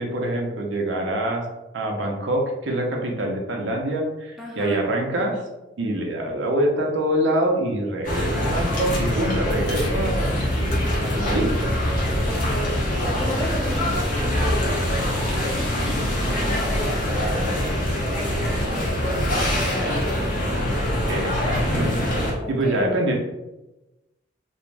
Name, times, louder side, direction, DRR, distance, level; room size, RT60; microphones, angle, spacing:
voice 1, 0.0-1.4 1.7-5.4 5.8-11.5 21.1-22.0 22.5-23.1, right 1 dB, 65° right, 1 dB, 0.5 m, -25 dB
voice 2, 4.4-4.8 12.3-17.6 18.1-20.2 22.4-23.0, equal, ahead, -4 dB, 0.4 m, -35 dB
sound 1, 8.0-22.3, left 1 dB, 45° left, 0.7 m, -24 dB
2.5 x 2.0 x 3.2 m, 1.0 s
head